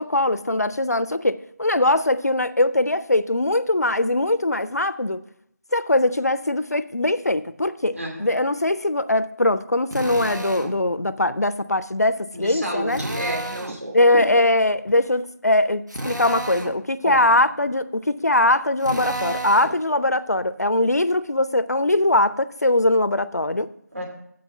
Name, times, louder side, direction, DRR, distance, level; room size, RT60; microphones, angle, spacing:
voice 1, 0.0-5.2 5.7-13.0 13.9-23.7, left 1 dB, 60° left, 0.4 m, -21 dB
voice 2, 7.9-8.3 12.3-14.3 17.0-17.4 23.9-24.1, right 1 dB, 50° right, 2.8 m, -30 dB
Drill, 9.9-10.8 12.9-13.8 15.9-16.8 18.8-19.8, right 1 dB, 80° right, 1.3 m, -31 dB
7.7 x 5.5 x 7.2 m
figure-of-eight pair, 180°, 10 cm